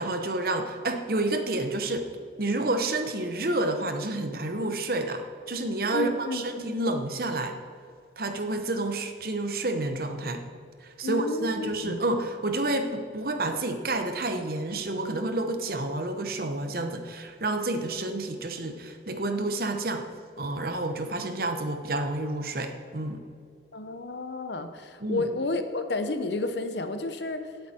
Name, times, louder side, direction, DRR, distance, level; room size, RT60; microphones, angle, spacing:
voice 1, 0.0-2.1 2.4-7.6 8.2-10.4 10.8-20.1 20.4-23.2 25.0-25.3, right 2 dB, 50° right, 6 dB, 1.0 m, -29 dB
voice 2, 5.9-6.4 11.0-12.0 21.3-21.4 23.7-27.5, left 2 dB, 70° left, 8 dB, 0.9 m, -31 dB
18.0 x 8.2 x 4.4 m, 2.2 s
head